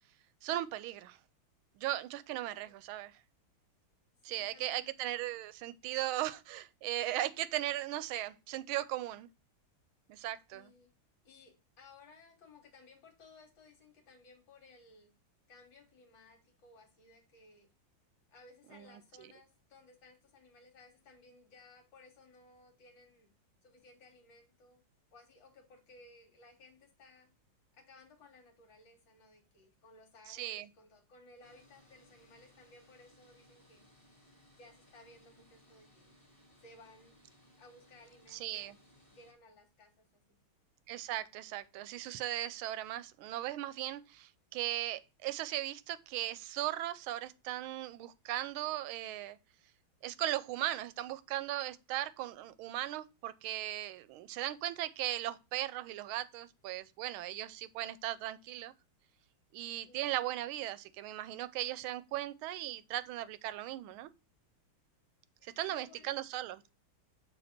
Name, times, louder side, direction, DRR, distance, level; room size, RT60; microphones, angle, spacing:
voice 1, 0.4-1.2 1.8-3.1 4.2-9.3 10.1-10.7 18.7-18.9 30.3-30.7 38.3-38.8 40.9-49.4 50.0-58.7 59.5-64.1 65.4-66.6, right 14 dB, 90° right, 1.4 m, -38 dB
voice 2, 4.2-4.9 10.5-10.9 11.2-15.1 15.5-17.7 18.3-23.3 23.6-24.8 25.1-27.3 27.7-33.9 34.6-36.1 36.6-37.2 37.6-38.8 39.1-40.4 59.8-60.0 65.4-66.2, left 3 dB, 70° left, 1.9 m, -59 dB
sound 1, 31.4-39.3, left 1 dB, 10° left, 1.6 m, -64 dB
7.2 x 2.8 x 5.7 m
omnidirectional pair, 2.2 m